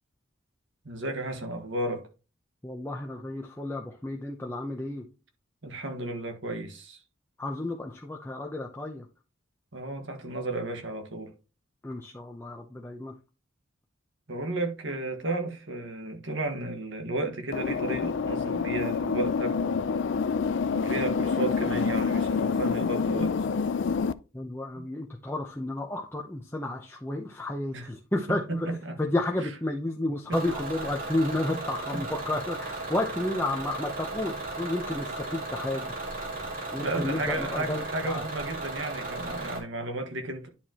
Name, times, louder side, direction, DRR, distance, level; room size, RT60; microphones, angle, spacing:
voice 1, 0.8-2.1 5.6-7.0 9.7-11.3 14.3-19.8 20.7-23.4 24.7-24.8 27.7-27.9 28.3-29.0 29.4-29.5 30.3-30.4 31.5-31.6 31.9-32.0 36.8-40.5, right 2 dB, 65° right, 1.6 m, -33 dB
voice 2, 2.6-5.1 7.4-9.1 11.8-13.1 24.3-28.7 29.0-35.9 36.7-38.2, left 1 dB, 10° left, 0.7 m, -32 dB
sound 1, 17.5-24.1, left 5 dB, 60° left, 0.4 m, -27 dB
Bus / Engine, 30.3-39.6, right 2 dB, 40° right, 2.8 m, -36 dB
10.0 x 4.7 x 2.9 m
head